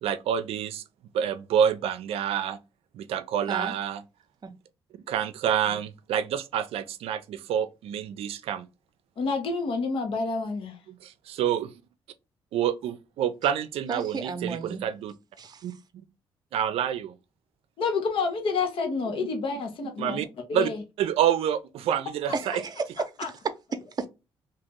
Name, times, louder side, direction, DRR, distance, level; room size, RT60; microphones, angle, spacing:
voice 1, 0.0-0.8 1.1-2.6 2.9-4.0 5.1-8.7 10.9-11.7 12.5-15.1 15.6-16.0 16.5-17.1 19.2-19.3 19.8-20.3 20.5-20.7 21.0-22.6, right 9 dB, 80° right, 0.5 m, -28 dB
voice 2, 9.2-10.8 17.8-20.2 20.5-20.8 23.2-23.3, left 4 dB, 65° left, 1.1 m, -28 dB
voice 3, 13.9-14.9 15.4-15.6 22.3-23.3 23.7-24.1, right 4 dB, 45° right, 0.7 m, -33 dB
3.0 x 2.8 x 3.6 m
cardioid pair, 85°, 10 cm